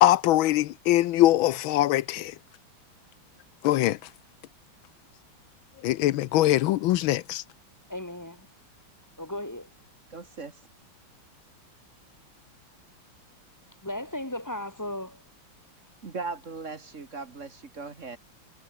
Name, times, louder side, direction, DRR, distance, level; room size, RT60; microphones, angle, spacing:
voice 1, 0.0-2.3 3.6-4.0 5.8-7.4, left 15 dB, 80° left, 1.4 m, -22 dB
voice 2, 7.9-8.5 9.2-9.7 13.8-15.2, left 1 dB, 10° left, 1.4 m, -35 dB
voice 3, 10.1-10.6 16.0-18.2, right 4 dB, 40° right, 1.9 m, -38 dB
omnidirectional pair, 2.3 m